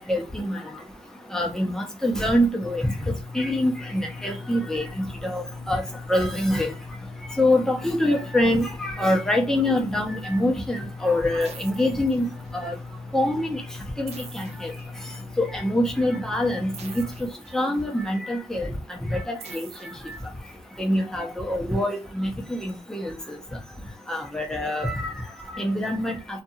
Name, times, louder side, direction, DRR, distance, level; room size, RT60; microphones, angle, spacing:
voice 1, 0.1-0.6 1.3-2.9 3.3-5.8 6.1-6.7 7.4-12.3 12.5-12.7 13.1-13.6 14.0-14.7 15.4-17.0 17.5-19.7 20.8-23.1 24.1-25.1 25.5-26.1, left 1 dB, 5° left, 0.8 m, -25 dB
sound 1, 2.6-17.3, left 3 dB, 50° left, 0.5 m, -40 dB
sound 2, 11.4-12.7 14.1-15.4 16.7-18.1 19.4-20.7, right 5 dB, 75° right, 0.6 m, -46 dB
2.6 x 2.4 x 2.7 m
cardioid pair, 90°, 11 cm